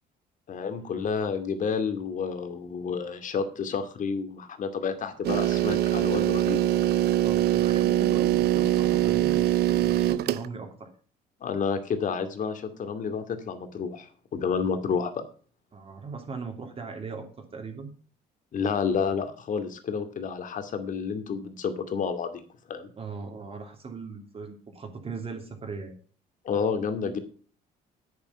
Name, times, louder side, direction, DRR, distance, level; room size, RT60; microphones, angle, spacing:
voice 1, 0.5-6.7 11.4-15.1 18.5-22.4 22.7-22.9 26.4-27.2, left 6 dB, 50° left, 9 dB, 2.4 m, -30 dB
sound 1, 5.2-10.5, right 13 dB, 70° right, 0.9 m, -23 dB
voice 2, 7.2-10.9 15.7-17.9 22.9-25.9, right 4 dB, 35° right, 3 dB, 3.1 m, -39 dB
9.6 x 9.6 x 5.8 m, 0.41 s
cardioid pair, 110°, 17 cm